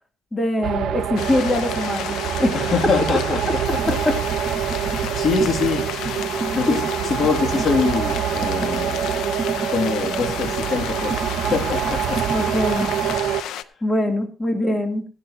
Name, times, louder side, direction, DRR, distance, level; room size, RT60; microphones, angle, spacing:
voice 1, 0.3-2.6 2.8-2.9 3.5-3.6 3.9-4.2 6.7-6.8 12.3-12.9 13.8-15.0, left 1 dB, 20° left, 2.8 m, -23 dB
sound 1, 0.6-13.4, right 10 dB, 75° right, 0.7 m, -25 dB
sound 2, 1.2-13.6, left 11 dB, 85° left, 0.7 m, -32 dB
voice 2, 2.5-3.4 3.7-3.8 4.9-5.9 6.5-9.1 9.7-12.2, left 5 dB, 50° left, 2.4 m, -24 dB
sound 3, 3.7-13.2, right 3 dB, 15° right, 1.1 m, -34 dB
16.5 x 11.0 x 2.8 m
cardioid pair, 90°, 0 cm